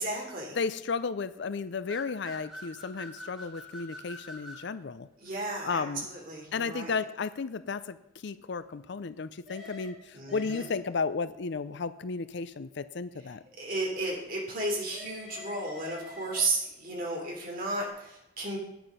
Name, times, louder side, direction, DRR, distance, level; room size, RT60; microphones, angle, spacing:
voice 1, 0.0-0.6 5.2-6.9 10.1-10.7 13.6-18.6, right 2 dB, 45° right, 0 dB, 3.1 m, -33 dB
voice 2, 0.6-5.1 5.6-6.1 6.5-13.4, left 4 dB, 55° left, 14 dB, 0.5 m, -34 dB
sound 1, 1.9-4.7 9.4-11.0 14.9-16.8, left 1 dB, ahead, 3.1 m, -45 dB
9.4 x 9.2 x 5.5 m, 0.88 s
head